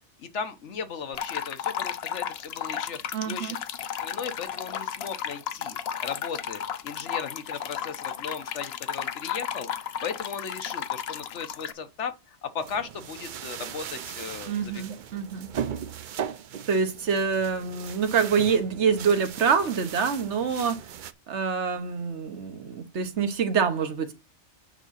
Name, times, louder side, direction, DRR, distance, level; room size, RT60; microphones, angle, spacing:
voice 1, 0.2-3.6 4.0-14.8, left 6 dB, 85° left, 1.3 m, -37 dB
sound 1, 1.1-11.7, left 9 dB, 65° left, 0.9 m, -34 dB
voice 2, 3.1-3.6 14.5-15.5 16.7-20.9 21.3-24.1, right 6 dB, 85° right, 1.3 m, -26 dB
sound 2, 12.6-21.1, right 8 dB, 55° right, 0.6 m, -38 dB
9.0 x 3.7 x 5.7 m
omnidirectional pair, 1.2 m